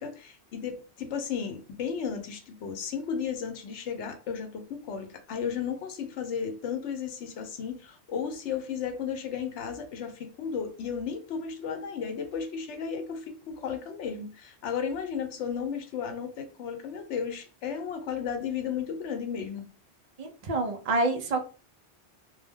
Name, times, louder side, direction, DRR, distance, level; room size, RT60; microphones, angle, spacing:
voice 1, 0.0-19.6, left 7 dB, 90° left, 5 dB, 0.9 m, -34 dB
voice 2, 20.2-21.4, right 2 dB, 60° right, 4 dB, 0.4 m, -27 dB
2.2 x 2.1 x 3.4 m, 0.36 s
omnidirectional pair, 1.2 m